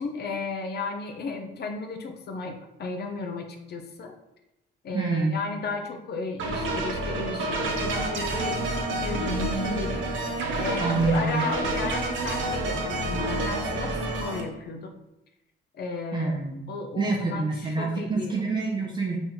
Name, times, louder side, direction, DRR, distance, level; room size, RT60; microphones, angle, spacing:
voice 1, 0.0-4.2 4.8-14.9 15.7-16.4 16.7-18.4, left 3 dB, 55° left, 4 dB, 0.7 m, -34 dB
voice 2, 4.9-5.4 10.8-11.5 16.1-16.6 17.0-19.2, right 3 dB, 20° right, -2 dB, 0.7 m, -26 dB
sound 1, 6.4-14.4, right 2 dB, 80° right, 0.9 m, -29 dB
4.0 x 3.0 x 3.7 m, 0.92 s
cardioid pair, 90°, 20 cm